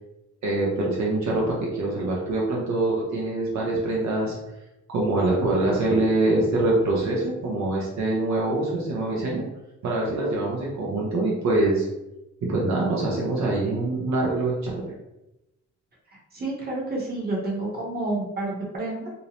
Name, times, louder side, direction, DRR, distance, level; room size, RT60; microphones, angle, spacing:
voice 1, 0.4-4.4 4.9-9.4 9.8-11.9 12.5-14.8, right 2 dB, 70° right, -4 dB, 0.7 m, -24 dB
voice 2, 16.3-19.1, right 2 dB, 30° right, -4 dB, 1.0 m, -29 dB
2.7 x 2.0 x 2.8 m, 0.92 s
cardioid pair, 95°, 30 cm